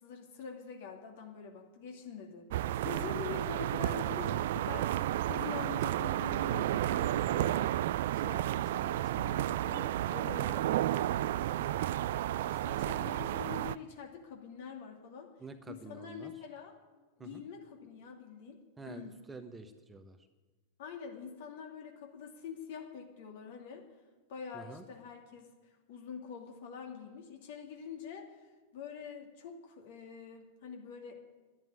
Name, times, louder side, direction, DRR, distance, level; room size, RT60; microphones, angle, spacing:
voice 1, 0.0-7.7 8.1-10.8 12.5-15.3 15.7-16.7 17.2-18.6 18.9-19.2 20.8-23.8 24.3-28.3 28.7-31.1, left 6 dB, 55° left, 2 dB, 2.5 m, -45 dB
sound 1, 2.5-13.8, right 13 dB, 55° right, 0.3 m, -32 dB
voice 2, 15.4-16.3 17.2-17.4 18.8-20.2 24.5-24.8, right 3 dB, 15° right, 8 dB, 1.1 m, -48 dB
10.5 x 10.5 x 10.0 m, 1.3 s
figure-of-eight pair, 90°, 0 cm